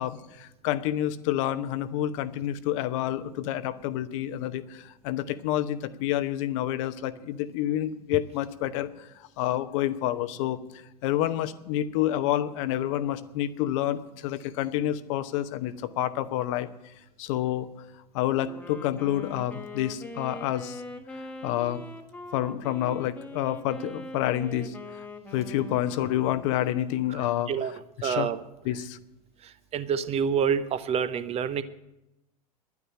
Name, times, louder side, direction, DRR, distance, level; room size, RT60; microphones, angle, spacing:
voice 1, 0.0-10.6 11.0-16.7 17.2-17.7 18.1-20.8 21.4-21.8 22.3-24.7 25.3-27.5 28.0-28.3 28.6-29.0, left 12 dB, 55° left, 12 dB, 0.9 m, -28 dB
Wind instrument woodwind instrument, 18.4-27.1, left 2 dB, 10° left, 1.4 m, -42 dB
voice 2, 27.1-27.7 28.0-28.4 29.4-31.6, right 7 dB, 35° right, 13 dB, 0.9 m, -28 dB
11.0 x 9.5 x 9.0 m, 0.91 s
figure-of-eight pair, 85°, 19 cm